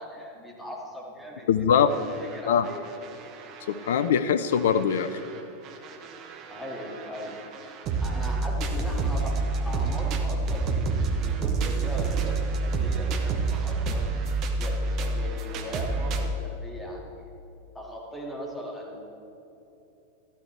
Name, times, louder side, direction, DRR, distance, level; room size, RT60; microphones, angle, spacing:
voice 1, 0.0-3.1 6.5-7.4 8.0-9.4 9.6-14.0 14.6-17.2 17.7-19.0, equal, 5° left, -3 dB, 2.5 m, -39 dB
voice 2, 1.5-1.9 2.5-2.7 3.7-5.2, left 8 dB, 60° left, 12 dB, 0.4 m, -22 dB
sound 1, 1.9-4.1 4.5-16.4, right 3 dB, 35° right, 1.0 m, -29 dB
13.0 x 13.0 x 3.5 m, 2.9 s
figure-of-eight pair, 90°, 0 cm